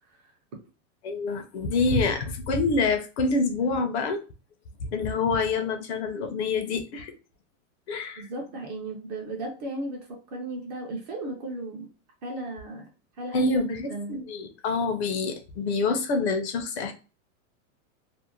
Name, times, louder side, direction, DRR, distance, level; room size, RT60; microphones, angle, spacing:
voice 1, 1.0-4.2 4.8-7.1 7.9-8.2 13.3-16.9, left 3 dB, 50° left, 6 dB, 0.6 m, -26 dB
voice 2, 8.2-11.9 12.2-12.9 13.2-14.2, right 2 dB, 30° right, 1 dB, 0.4 m, -35 dB
2.5 x 2.0 x 2.8 m, 0.32 s
supercardioid pair, 160°, 42 cm